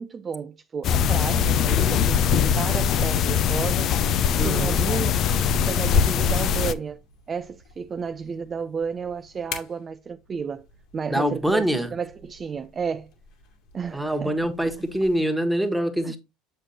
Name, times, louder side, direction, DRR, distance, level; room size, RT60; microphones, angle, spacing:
voice 1, 0.0-7.0 7.3-10.7 10.9-13.1 13.7-14.5 14.8-14.9 16.0-16.2, right 6 dB, 35° right, 0.4 m, -32 dB
sound 1, 0.8-6.7, left 8 dB, 50° left, 0.5 m, -21 dB
sound 2, 3.3-15.2, left 6 dB, 65° left, 2.1 m, -47 dB
voice 2, 4.4-4.8 11.1-11.9 13.9-16.2, right 1 dB, ahead, 1.5 m, -24 dB
7.4 x 6.4 x 2.9 m
hypercardioid pair, 75°, 0 cm